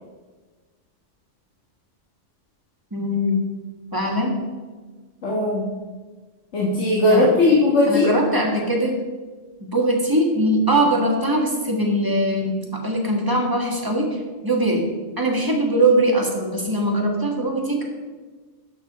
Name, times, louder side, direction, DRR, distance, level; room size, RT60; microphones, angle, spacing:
voice 1, 2.9-3.4 3.9-4.4 7.0-7.5 7.9-9.0 9.7-14.9 15.2-17.8, right 1 dB, 15° right, 0 dB, 1.6 m, -21 dB
voice 2, 5.2-5.6 6.5-8.1, left 2 dB, 70° left, -4 dB, 1.8 m, -18 dB
11.5 x 7.1 x 4.1 m, 1.4 s
omnidirectional pair, 1.3 m